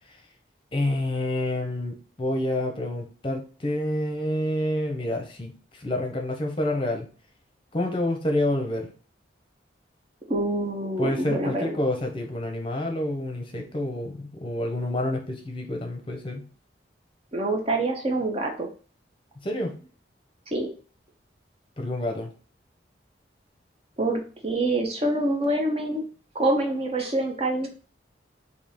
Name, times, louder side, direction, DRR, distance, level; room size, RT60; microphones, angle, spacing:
voice 1, 0.7-7.1 7.7-8.9 11.0-16.4 19.4-19.7 21.8-22.3, left 1 dB, 30° left, 3 dB, 0.7 m, -28 dB
voice 2, 10.3-11.8 17.3-18.7 20.5-20.7 24.0-26.0 26.3-27.7, right 2 dB, 30° right, 3 dB, 0.7 m, -26 dB
3.5 x 2.8 x 4.2 m, 0.38 s
head